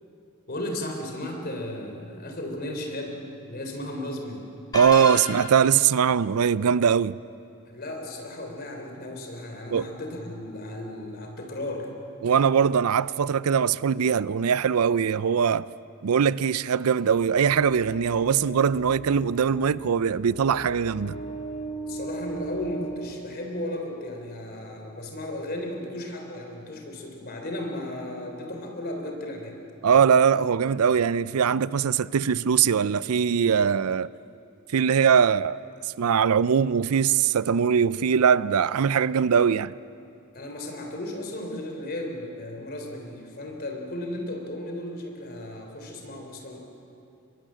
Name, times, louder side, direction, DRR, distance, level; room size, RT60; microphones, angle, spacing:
voice 1, 0.5-3.2 3.5-4.5 7.7-11.9 21.9-29.6 40.3-46.6, left 1 dB, 45° left, 3.6 m, -35 dB
sound 1, 4.7-5.8, left 2 dB, 20° left, 3.2 m, -32 dB
voice 2, 4.7-7.2 9.7-9.9 12.2-15.7 16.0-21.2 29.8-34.1 34.7-35.6 36.0-39.7, right 7 dB, 90° right, 0.5 m, -21 dB
sound 2, 17.1-24.1, right 2 dB, 65° left, 2.5 m, -38 dB
24.0 x 22.5 x 7.5 m
head